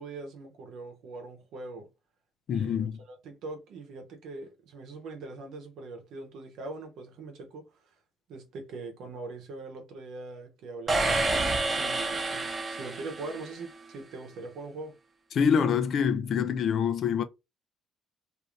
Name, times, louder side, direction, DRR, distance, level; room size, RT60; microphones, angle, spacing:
voice 1, 0.0-1.9 2.5-7.7 8.3-11.2 11.7-15.0, right 3 dB, 75° right, 0.9 m, -42 dB
voice 2, 2.5-3.0 15.3-17.2, left 7 dB, 55° left, 0.4 m, -25 dB
sound 1, 10.9-13.7, right 2 dB, 30° right, 0.9 m, -29 dB
2.7 x 2.5 x 3.1 m
cardioid pair, 115°, 0 cm